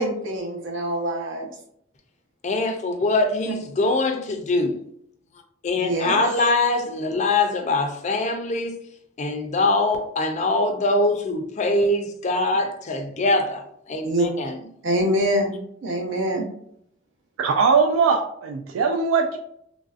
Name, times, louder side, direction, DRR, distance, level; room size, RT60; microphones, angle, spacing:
voice 1, 0.0-1.5 5.8-6.2 14.0-14.3 14.8-15.5 15.8-16.4, right 1 dB, 70° right, 0.7 m, -24 dB
voice 2, 2.4-4.8 5.6-8.7 9.2-13.6 13.9-14.6, left 2 dB, 35° left, 0.4 m, -23 dB
voice 3, 17.4-19.4, right 5 dB, 85° right, 0.3 m, -20 dB
3.1 x 2.5 x 2.4 m
head